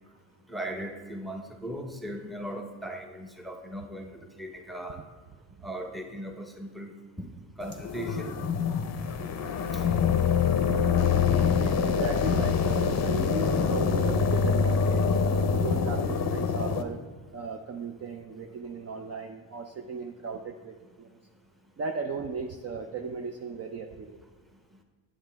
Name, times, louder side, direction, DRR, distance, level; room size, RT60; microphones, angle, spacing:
voice 1, 0.5-4.1 4.4-5.0 5.6-7.3 7.6-8.3 9.7-9.8, right 1 dB, ahead, 3 dB, 0.7 m, -38 dB
sound 1, 7.6-16.8, left 6 dB, 35° left, 0.6 m, -25 dB
voice 2, 11.6-17.0 17.3-21.2 21.8-24.2, right 5 dB, 35° right, 4 dB, 0.5 m, -36 dB
8.7 x 7.6 x 3.4 m, 1.4 s
cardioid pair, 95°, 47 cm